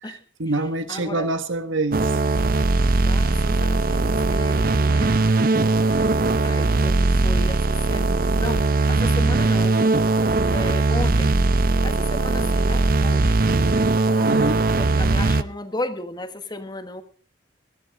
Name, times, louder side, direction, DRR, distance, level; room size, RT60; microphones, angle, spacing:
voice 1, 0.0-2.1 14.2-14.6, right 2 dB, 80° right, 1.6 m, -26 dB
voice 2, 0.9-1.3 3.0-5.4 6.4-9.9 10.5-11.4 11.8-13.4 14.1-17.0, left 1 dB, 20° left, 1.2 m, -34 dB
sound 1, 1.9-15.4, right 3 dB, 45° right, 0.6 m, -20 dB
19.0 x 14.0 x 3.7 m
head